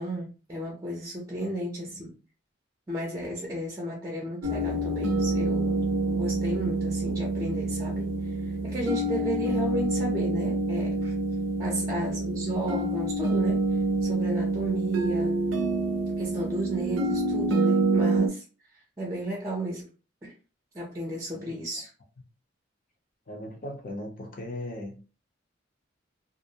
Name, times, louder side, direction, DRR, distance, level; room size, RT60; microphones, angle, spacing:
voice 1, 0.0-2.1 2.9-5.8 6.1-11.1 11.6-13.6 14.0-15.4 16.2-18.4 18.7-19.9 20.2-20.3 20.7-21.9, equal, 20° right, -2 dB, 0.5 m, -33 dB
voice 2, 1.4-1.9 11.6-12.0 21.3-21.6 23.3-25.0, left 1 dB, 45° left, 1 dB, 0.6 m, -39 dB
sound 1, 4.4-18.3, right 2 dB, 85° right, 0.5 m, -27 dB
2.4 x 2.0 x 2.7 m, 0.34 s
head